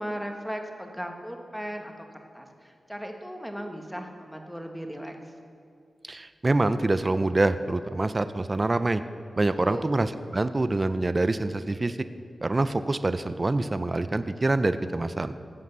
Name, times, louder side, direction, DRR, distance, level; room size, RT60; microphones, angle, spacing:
voice 1, 0.0-5.2 9.6-9.9, equal, ahead, 4 dB, 1.1 m, -37 dB
voice 2, 6.0-9.0 9.4-12.0 12.4-15.3, right 2 dB, 25° right, 12 dB, 0.4 m, -25 dB
15.0 x 7.7 x 6.7 m, 2.3 s
wide cardioid pair, 130°, 0 cm